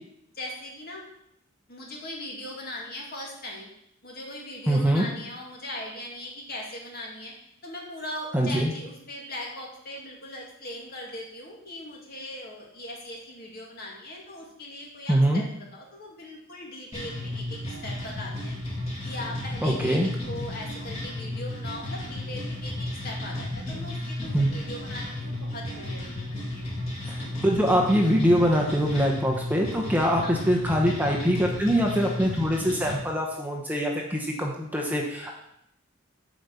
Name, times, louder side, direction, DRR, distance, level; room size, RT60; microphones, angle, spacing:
voice 1, 0.3-1.0 1.7-3.7 4.0-7.3 7.6-15.5 15.7-18.6 19.0-26.7 30.2-30.5, left 1 dB, 50° left, -2 dB, 2.3 m, -39 dB
voice 2, 4.7-5.0 8.3-8.7 15.1-15.4 19.6-20.1 24.3-24.5 27.1-35.3, equal, 10° right, 0 dB, 0.9 m, -23 dB
sound 1, 16.9-32.9, left 1 dB, 30° left, 2.4 m, -34 dB
7.8 x 5.1 x 7.0 m, 0.76 s
head